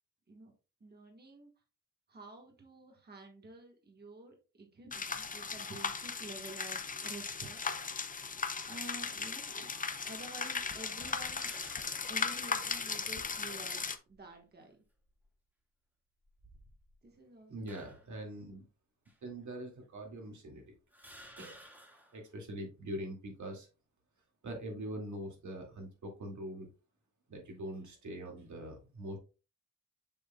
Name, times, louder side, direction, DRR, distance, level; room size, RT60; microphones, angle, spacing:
voice 1, 0.8-1.5 2.1-7.6 8.7-9.7 10.1-11.5 12.1-14.8 17.0-17.8, right 2 dB, 35° right, 1 dB, 1.5 m, -50 dB
sound 1, 4.9-14.0, left 5 dB, 25° left, 0.6 m, -37 dB
sound 2, 7.6-8.0 8.8-8.9 10.8-12.2 12.7-12.8 13.9-14.3 15.0-15.3 16.2-17.0 17.7-18.2 19.0-19.2 20.1-20.2 20.9-22.2, equal, 5° right, 2.2 m, -56 dB
voice 2, 17.5-18.6 19.2-20.6 21.4-21.6 22.1-23.7 24.4-26.7 27.3-29.2, right 1 dB, 70° right, 1 dB, 2.3 m, -43 dB
6.8 x 6.4 x 2.3 m, 0.32 s
wide cardioid pair, 130°, 30 cm